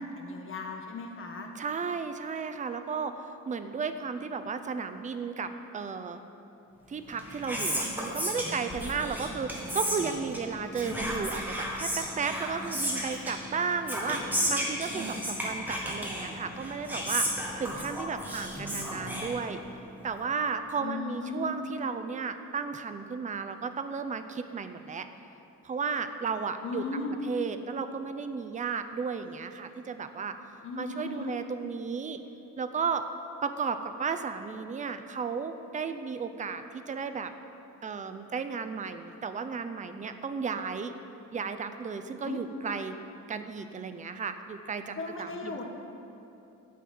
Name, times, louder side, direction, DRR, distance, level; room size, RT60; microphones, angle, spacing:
voice 1, 0.0-1.5 20.8-21.6 26.6-27.2 30.6-31.4 42.2-42.4 45.0-45.6, left 3 dB, 40° left, 2 dB, 1.3 m, -36 dB
voice 2, 1.6-3.2 3.5-6.2 6.9-19.6 20.0-25.1 25.6-26.8 27.2-30.4 30.8-32.2 32.6-33.1 33.4-37.3 37.8-41.0 41.3-43.0 43.3-45.6, right 5 dB, 25° right, 9 dB, 0.5 m, -34 dB
Whispering, 7.0-19.9, equal, 5° right, 1.7 m, -34 dB
9.2 x 6.3 x 8.6 m, 2.8 s
cardioid pair, 140°, 32 cm